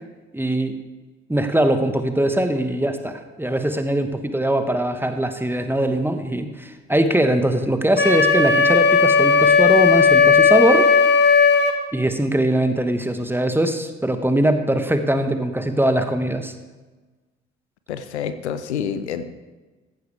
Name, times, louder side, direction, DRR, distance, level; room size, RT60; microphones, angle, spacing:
voice 1, 0.3-0.8 1.3-10.9 11.9-16.5, right 1 dB, 5° right, 8 dB, 1.3 m, -21 dB
Wind instrument woodwind instrument, 8.0-11.8, left 5 dB, 30° left, 1.6 m, -15 dB
voice 2, 17.9-19.3, left 7 dB, 85° left, 11 dB, 0.6 m, -28 dB
15.0 x 11.5 x 3.4 m, 1.2 s
figure-of-eight pair, 45°, 33 cm